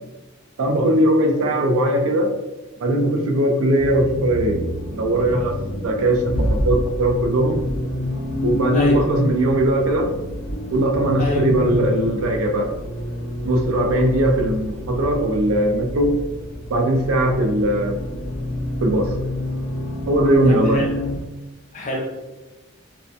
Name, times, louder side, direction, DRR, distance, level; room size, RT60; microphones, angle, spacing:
voice 1, 0.6-2.3 2.8-4.6 4.9-5.6 5.8-7.6 8.4-10.1 10.7-12.7 13.4-16.2 16.7-18.0 18.8-19.2 20.1-20.9, right 1 dB, 80° right, 3 dB, 0.4 m, -19 dB
Accelerating revving vroom, 3.8-21.2, equal, 90° left, 0.4 m, -28 dB
voice 2, 11.2-11.5 20.5-20.9 21.7-22.0, left 2 dB, 35° left, -2 dB, 0.5 m, -25 dB
2.5 x 2.1 x 2.5 m, 1.1 s
head